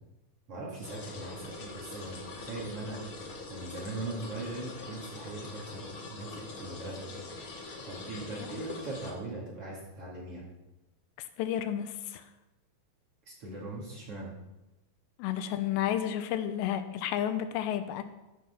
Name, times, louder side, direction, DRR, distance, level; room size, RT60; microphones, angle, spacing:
voice 1, 0.5-7.2 7.8-10.4 13.3-14.3, right 2 dB, 40° right, -4 dB, 2.7 m, -40 dB
sound 1, 0.8-9.1, left 3 dB, 65° left, 1.3 m, -43 dB
voice 2, 11.4-12.2 15.2-18.0, left 10 dB, 85° left, 10 dB, 2.9 m, -31 dB
13.5 x 6.2 x 5.9 m, 0.98 s
omnidirectional pair, 4.9 m